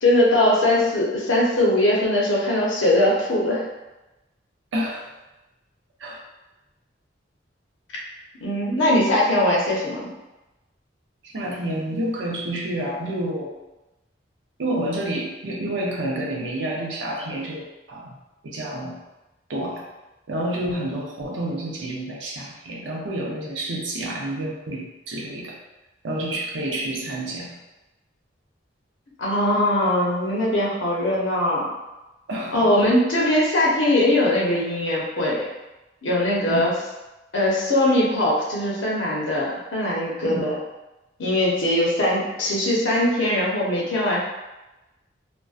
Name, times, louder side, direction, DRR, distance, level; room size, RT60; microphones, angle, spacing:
voice 1, 0.0-3.6 8.4-10.1 29.2-31.7 32.5-35.4 36.0-36.7 37.3-40.5 41.2-44.2, left 1 dB, 90° left, -4 dB, 0.7 m, -21 dB
voice 2, 4.7-5.0 6.0-6.2 11.2-13.6 14.6-18.2 18.4-19.0 19.5-19.9 20.3-25.6 26.0-27.6 32.3-32.7 36.5-36.7 40.2-40.5, right 1 dB, 85° right, -2 dB, 0.5 m, -29 dB
2.5 x 2.1 x 2.3 m, 1.0 s
head